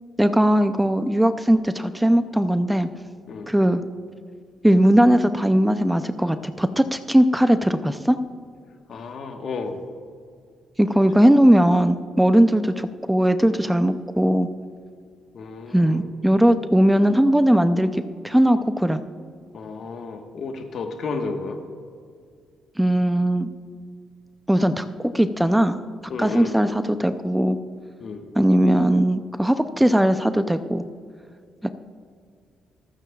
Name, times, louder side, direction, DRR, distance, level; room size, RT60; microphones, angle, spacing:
voice 1, 0.2-2.9 3.5-3.8 4.6-8.2 10.8-14.5 15.7-19.0 22.8-23.5 24.5-25.8 26.2-27.6 28.4-30.8 31.6-31.7, right 1 dB, 5° right, 10 dB, 0.5 m, -19 dB
voice 2, 8.9-9.8 15.3-16.0 19.5-21.6 26.1-26.5 28.0-28.2, left 4 dB, 60° left, 5 dB, 1.3 m, -32 dB
25.5 x 9.1 x 2.4 m, 2.2 s
cardioid pair, 90°, 0 cm